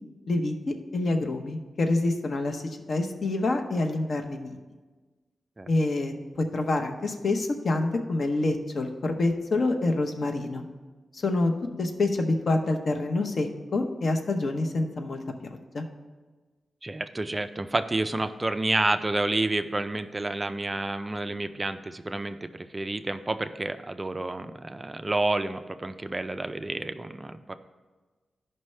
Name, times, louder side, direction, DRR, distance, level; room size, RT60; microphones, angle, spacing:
voice 1, 0.3-2.6 2.9-4.6 5.7-10.6 11.1-11.5 11.8-15.2 15.5-15.8, left 2 dB, 50° left, 5 dB, 0.7 m, -27 dB
voice 2, 16.8-27.5, right 2 dB, 20° right, 9 dB, 0.3 m, -29 dB
14.5 x 5.4 x 3.2 m, 1.3 s
wide cardioid pair, 155°, 0 cm